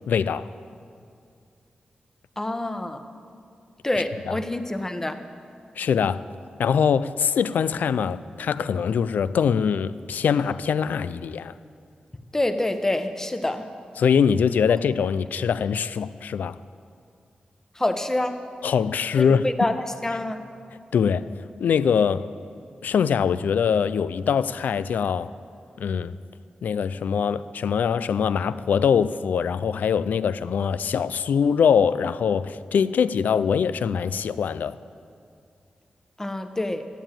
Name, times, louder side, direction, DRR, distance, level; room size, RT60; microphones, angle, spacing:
voice 1, 0.1-0.5 4.3-4.4 5.8-6.2 6.6-11.5 14.0-16.6 18.6-19.5 20.9-21.3 21.6-22.3 22.8-25.3 25.8-26.2 26.6-34.8, left 7 dB, 90° left, 0.4 m, -23 dB
voice 2, 2.4-3.0 3.8-5.2 12.3-13.7 14.7-14.8 17.7-18.4 19.2-20.4 36.2-36.9, left 1 dB, 15° left, 1.0 m, -27 dB
13.5 x 9.0 x 9.0 m
wide cardioid pair, 90°, 3 cm